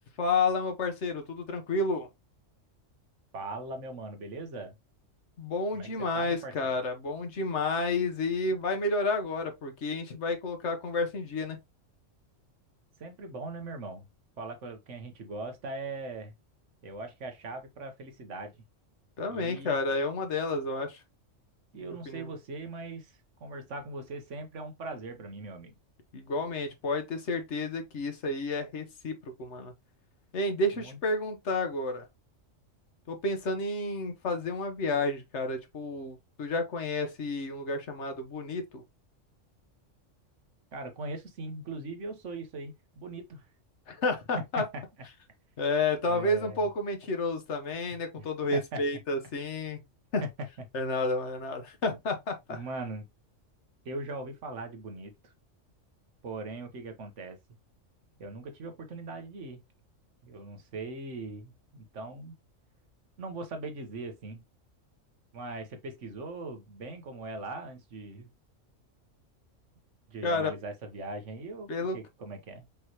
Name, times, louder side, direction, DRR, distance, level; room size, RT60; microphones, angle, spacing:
voice 1, 0.2-2.1 5.4-11.6 19.2-21.0 21.8-22.3 26.1-29.7 30.3-32.0 33.1-38.8 43.9-44.6 45.6-49.8 50.1-50.2 50.7-52.6 70.2-70.5 71.7-72.0, left 2 dB, 65° left, 1.3 m, -31 dB
voice 2, 3.3-4.7 5.7-6.7 13.0-14.1 14.4-16.3 16.8-18.5 19.3-19.7 21.7-25.7 30.8-31.0 40.7-43.5 44.6-44.8 46.1-46.7 48.2-48.3 48.5-48.8 50.2-50.3 52.5-53.0 53.8-55.3 56.2-57.4 58.2-59.6 60.2-62.3 63.2-64.4 65.3-68.3 70.1-72.7, right 2 dB, 70° right, 1.3 m, -40 dB
5.3 x 3.1 x 2.8 m
omnidirectional pair, 1.3 m